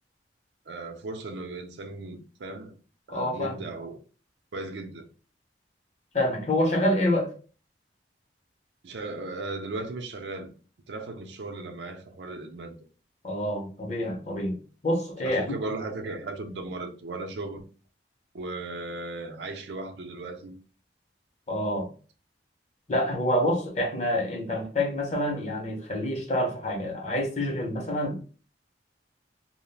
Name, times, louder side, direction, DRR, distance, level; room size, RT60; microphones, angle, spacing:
voice 1, 0.7-2.8 3.1-4.0 4.5-5.1 8.8-10.5 10.9-12.8 15.3-17.6 18.3-20.5, right 2 dB, 75° right, 0.5 m, -36 dB
voice 2, 3.1-3.5 6.1-7.3 13.2-15.4 21.5-21.9 22.9-28.2, left 1 dB, 40° left, 0.7 m, -27 dB
2.3 x 2.0 x 3.2 m
head